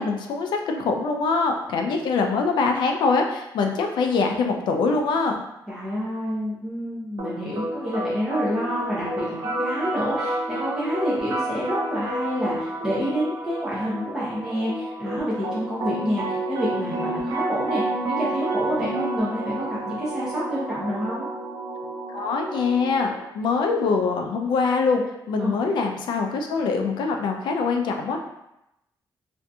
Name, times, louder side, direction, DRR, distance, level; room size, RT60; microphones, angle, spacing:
voice 1, 0.0-5.4 22.1-23.1 23.3-25.0 25.3-28.2, left 4 dB, 75° left, 3 dB, 0.4 m, -23 dB
voice 2, 5.7-17.8 18.1-21.3 25.4-25.5, equal, 10° right, -9 dB, 0.6 m, -28 dB
sound 1, 7.2-23.2, right 2 dB, 75° right, 0.6 m, -30 dB
2.7 x 2.5 x 2.2 m, 0.87 s
cardioid pair, 145°, 8 cm